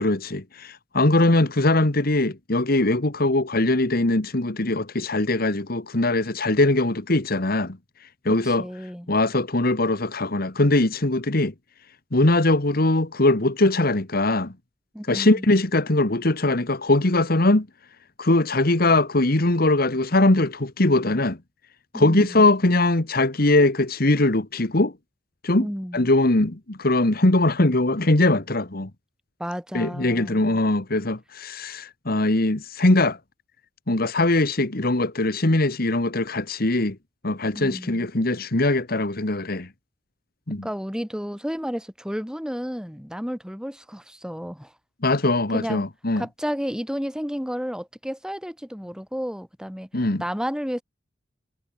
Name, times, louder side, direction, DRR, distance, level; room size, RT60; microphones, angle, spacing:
voice 1, 0.0-7.8 8.3-8.6 9.1-11.5 12.1-14.5 15.1-17.7 18.2-21.4 21.9-24.9 25.4-25.7 25.9-28.9 29.7-33.2 33.9-37.0 37.2-39.7 40.5-40.6 45.0-46.2 49.9-50.2, left 2 dB, 55° left, 1.7 m, -21 dB
voice 2, 8.4-9.1 14.9-15.5 21.9-22.5 25.6-26.1 29.4-30.6 37.5-38.1 40.6-44.7 45.5-45.9 46.2-49.9 50.2-50.8, equal, 5° right, 7.1 m, -32 dB
head